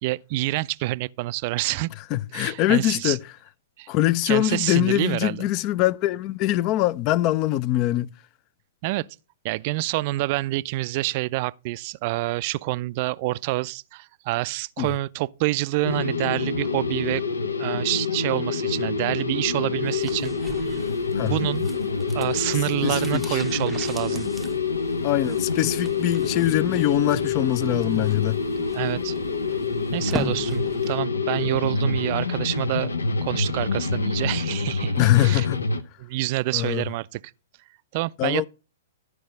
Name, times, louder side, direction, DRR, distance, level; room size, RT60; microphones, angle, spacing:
voice 1, 0.0-1.9 2.3-3.2 3.8-3.9 4.2-5.5 8.8-9.1 9.4-17.2 17.6-20.8 21.3-21.7 22.1-24.3 28.7-29.1 29.9-32.9 33.2-35.5 36.0-37.2 37.9-38.5, right 19 dB, 45° right, 0.3 m, -27 dB
voice 2, 2.1-3.2 3.9-8.1 14.8-14.9 21.2-21.4 22.8-23.4 25.0-28.4 35.0-35.6 36.5-36.8 38.2-38.5, left 14 dB, 35° left, 0.4 m, -23 dB
sound 1, 15.8-35.8, left 4 dB, 85° left, 0.8 m, -27 dB
sound 2, 19.8-31.0 31.3-31.4, equal, ahead, 0.7 m, -40 dB
12.5 x 4.7 x 5.2 m
figure-of-eight pair, 110°, 0 cm